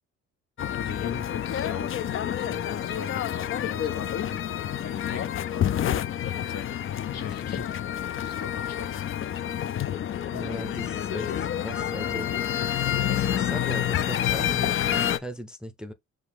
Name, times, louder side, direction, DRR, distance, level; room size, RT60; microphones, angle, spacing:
sound 1, 0.6-15.2, left 10 dB, 45° left, 0.5 m, -28 dB
voice 1, 0.8-2.0 2.3-4.4 4.8-5.8 6.4-6.8 7.1-7.8 8.2-9.0, left 7 dB, 60° left, 1.4 m, -40 dB
voice 2, 10.3-12.3 12.9-15.9, equal, 5° right, 0.6 m, -38 dB
4.9 x 2.5 x 3.3 m
cardioid pair, 90°, 30 cm